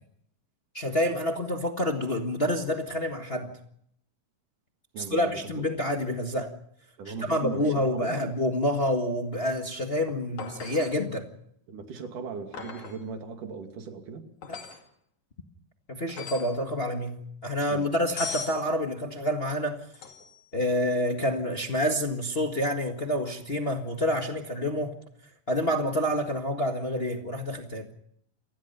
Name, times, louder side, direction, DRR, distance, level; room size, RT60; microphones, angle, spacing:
voice 1, 0.7-3.5 5.0-6.5 7.0-11.3 14.5-14.6 15.9-19.8 20.5-24.9 25.5-27.9, left 1 dB, 25° left, 1.3 m, -28 dB
voice 2, 4.9-5.6 7.0-8.2 11.7-14.3 17.7-17.9, right 5 dB, 80° right, 4.1 m, -38 dB
sound 1, 10.4-11.0 12.5-13.0 14.4-14.8 16.1-16.6 18.2-18.6 19.9-20.4 23.2-23.3, left 6 dB, 65° left, 3.8 m, -39 dB
28.0 x 20.0 x 5.6 m
omnidirectional pair, 3.7 m